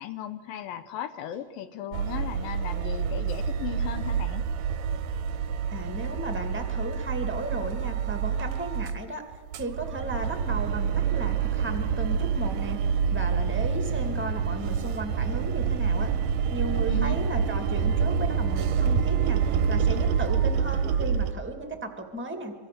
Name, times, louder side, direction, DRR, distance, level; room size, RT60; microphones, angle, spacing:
voice 1, 0.0-4.4 16.9-17.2, left 10 dB, 75° left, 10 dB, 2.4 m, -36 dB
sound 1, 1.9-9.0 9.3-21.3, right 7 dB, 70° right, 2.1 m, -27 dB
voice 2, 5.7-9.2 9.5-12.8 13.1-16.1 16.5-19.4 19.7-22.5, right 1 dB, 5° right, 5 dB, 0.8 m, -35 dB
26.0 x 24.5 x 6.8 m, 1.5 s
omnidirectional pair, 4.6 m